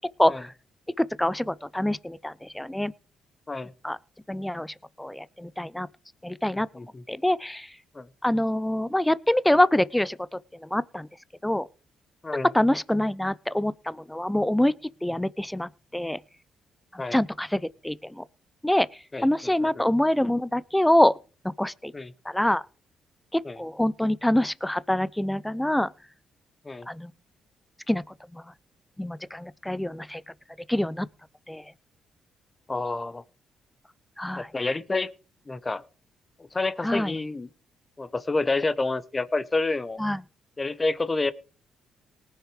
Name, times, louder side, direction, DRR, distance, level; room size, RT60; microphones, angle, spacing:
voice 1, 0.2-0.5 1.0-2.9 3.8-4.0 4.3-5.9 6.2-6.7 7.1-7.7 8.2-10.2 10.6-11.1 11.4-11.7 12.5-14.7 15.0-16.2 16.9-18.2 18.6-18.9 19.2-21.2 21.4-21.9 22.3-22.6 23.3-25.9 26.9-27.1 27.9-28.0 28.3-28.4 29.0-30.2 30.7-31.1 31.5-31.6 34.2-34.5 36.8-37.1 40.0-40.2, left 1 dB, 5° left, 0.6 m, -25 dB
voice 2, 6.5-7.0 7.9-8.1 12.2-12.5 17.0-17.2 19.1-19.9 21.9-22.1 23.4-23.6 26.6-26.9 32.7-33.2 34.3-35.1 35.5-35.8 36.5-37.5 38.0-40.0 40.6-41.3, left 3 dB, 25° left, 1.1 m, -29 dB
19.0 x 6.5 x 4.8 m
supercardioid pair, 65°, 0 cm